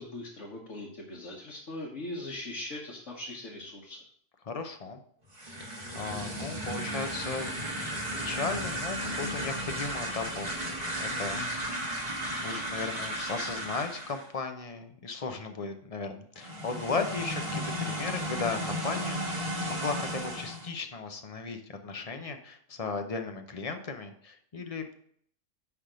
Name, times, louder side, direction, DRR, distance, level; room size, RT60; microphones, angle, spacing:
voice 1, 0.0-4.0, left 1 dB, 65° left, -4 dB, 1.5 m, -40 dB
voice 2, 4.4-5.0 5.6-7.5 7.9-11.8 12.4-24.9, left 4 dB, 35° left, 6 dB, 0.6 m, -36 dB
sound 1, 5.3-14.3 16.4-20.7, equal, 30° right, 1.7 m, -34 dB
10.0 x 3.5 x 5.0 m, 0.64 s
omnidirectional pair, 1.4 m